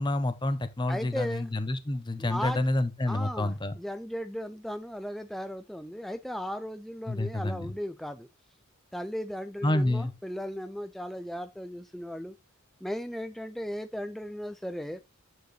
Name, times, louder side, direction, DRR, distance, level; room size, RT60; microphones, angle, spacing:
voice 1, 0.0-3.7 7.1-7.7 9.6-10.1, left 1 dB, 20° left, 0.8 m, -28 dB
voice 2, 0.9-1.5 2.2-2.6 3.1-8.3 8.9-12.4 12.8-15.0, equal, ahead, 0.3 m, -36 dB
9.1 x 4.6 x 3.2 m
head